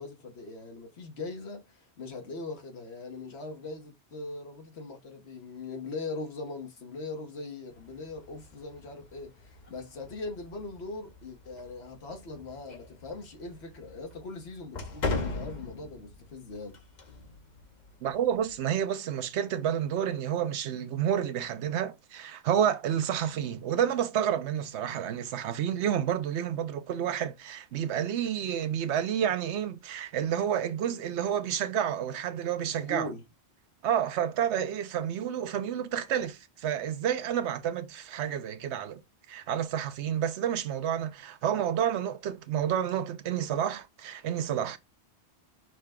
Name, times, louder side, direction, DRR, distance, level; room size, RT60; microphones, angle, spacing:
voice 1, 0.0-16.8 32.6-33.2, left 3 dB, 70° left, 1.4 m, -40 dB
sound 1, 7.7-18.6, left 3 dB, 45° left, 0.9 m, -41 dB
voice 2, 18.0-33.1 33.8-39.0 39.3-44.8, right 9 dB, 85° right, 0.9 m, -30 dB
6.5 x 2.2 x 3.6 m
omnidirectional pair, 1.1 m